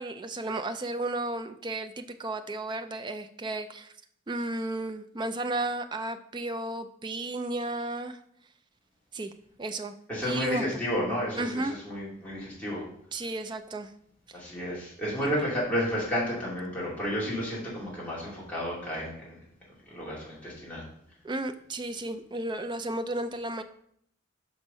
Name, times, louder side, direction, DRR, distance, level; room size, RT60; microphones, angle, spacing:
voice 1, 0.0-3.9 4.3-8.2 9.1-9.3 9.6-9.9 10.2-10.8 11.3-11.7 13.1-13.9 15.2-15.3 21.2-23.6, right 2 dB, 20° right, 8 dB, 0.4 m, -33 dB
voice 2, 10.1-12.8 14.3-19.4 19.9-20.8, equal, 5° left, -7 dB, 2.6 m, -31 dB
6.2 x 5.2 x 5.4 m, 0.68 s
head